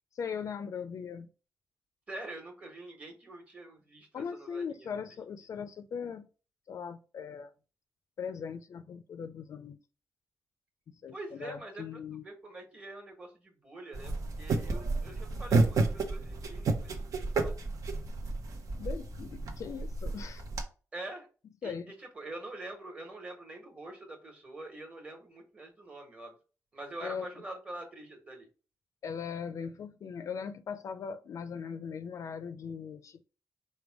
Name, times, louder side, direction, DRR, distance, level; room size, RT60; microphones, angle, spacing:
voice 1, 0.1-1.3 4.1-6.3 6.7-7.5 8.2-9.8 11.0-12.2 18.8-20.4 21.6-21.9 27.0-27.3 29.0-33.2, left 6 dB, 60° left, 0.4 m, -39 dB
voice 2, 2.1-4.6 11.1-11.8 12.1-17.5 20.9-21.3 21.6-21.7 22.0-26.3 26.7-28.5, right 2 dB, 20° right, 1.3 m, -45 dB
sound 1, 13.9-20.6, right 3 dB, 65° right, 0.9 m, -31 dB
5.1 x 2.2 x 4.6 m
wide cardioid pair, 160°, 6 cm